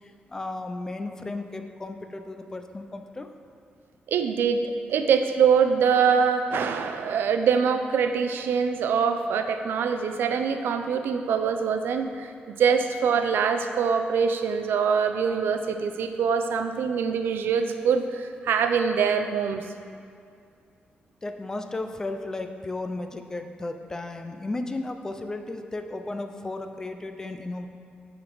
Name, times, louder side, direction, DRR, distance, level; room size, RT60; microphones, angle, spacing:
voice 1, 0.0-3.3 21.2-27.7, left 2 dB, 15° left, 6 dB, 0.3 m, -34 dB
voice 2, 4.1-19.6, right 6 dB, 90° right, 7 dB, 0.4 m, -24 dB
8.4 x 3.9 x 4.5 m, 2.3 s
wide cardioid pair, 180°, 4 cm